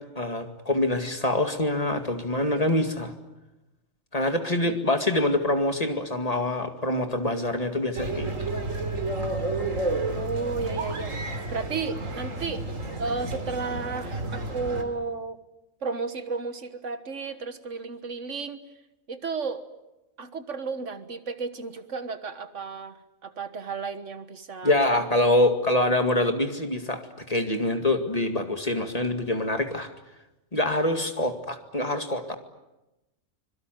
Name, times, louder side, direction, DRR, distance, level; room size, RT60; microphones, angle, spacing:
voice 1, 0.0-3.1 4.1-8.5 24.6-29.9 30.5-32.4, left 1 dB, 30° left, 6 dB, 2.2 m, -25 dB
sound 1, 7.9-14.8, right 2 dB, 85° right, 3.4 m, -31 dB
voice 2, 10.2-11.1 11.5-12.6 13.0-15.4 15.8-18.6 19.1-19.7 20.2-23.0 23.2-25.3, right 4 dB, 70° right, 10 dB, 1.8 m, -33 dB
25.5 x 23.0 x 9.2 m, 0.99 s
omnidirectional pair, 1.3 m